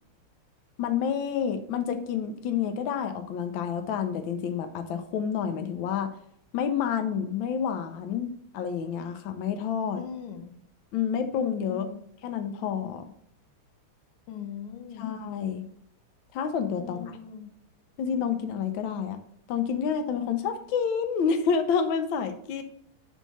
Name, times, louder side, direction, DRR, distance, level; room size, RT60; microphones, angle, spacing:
voice 1, 0.8-6.1 6.5-10.0 10.9-11.9 12.2-13.0 15.0-15.6 16.3-17.1 18.0-19.2 19.5-22.6, left 7 dB, 75° left, 7 dB, 1.4 m, -29 dB
voice 2, 10.0-10.5 11.6-12.0 14.3-15.1 16.8-17.5, left 8 dB, 90° left, 6 dB, 1.7 m, -40 dB
5.7 x 4.6 x 5.5 m, 0.69 s
omnidirectional pair, 2.3 m